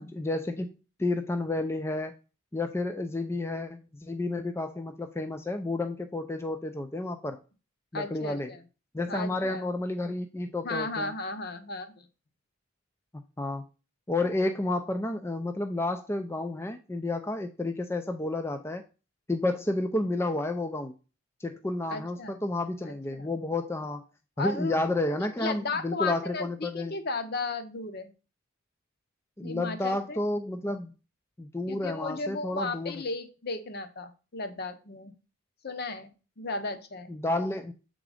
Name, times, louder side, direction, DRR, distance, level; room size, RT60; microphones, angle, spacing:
voice 1, 0.0-2.1 2.5-7.4 7.9-8.5 8.9-11.1 13.4-13.7 14.1-18.8 19.3-20.9 21.4-24.0 24.4-27.0 29.4-30.9 31.4-33.0 37.1-37.7, left 2 dB, 10° left, 6 dB, 0.4 m, -31 dB
voice 2, 7.9-8.6 9.1-9.6 10.6-11.9 21.9-22.4 22.9-23.3 24.4-24.8 25.2-28.1 29.4-30.2 31.7-35.1 35.6-37.1, left 3 dB, 50° left, 9 dB, 0.8 m, -35 dB
7.1 x 3.8 x 4.9 m, 0.33 s
head